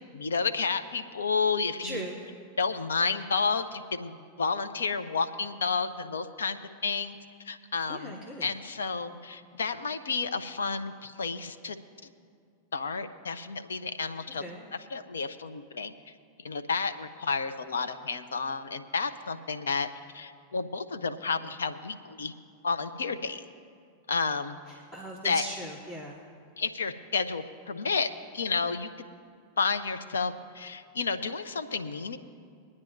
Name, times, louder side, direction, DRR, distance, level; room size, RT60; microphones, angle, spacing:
voice 1, 0.0-2.0 2.6-7.2 7.4-11.8 12.7-14.4 14.9-15.9 16.4-19.9 20.1-22.3 22.6-23.4 24.1-24.6 25.2-25.4 26.6-29.1 29.6-32.2, left 4 dB, 80° left, 9 dB, 0.7 m, -31 dB
voice 2, 1.8-2.2 7.9-8.5 14.4-14.6 24.7-26.2, right 1 dB, 35° left, -5 dB, 2.4 m, -39 dB
24.0 x 9.7 x 2.6 m, 2.3 s
hypercardioid pair, 95°, 0 cm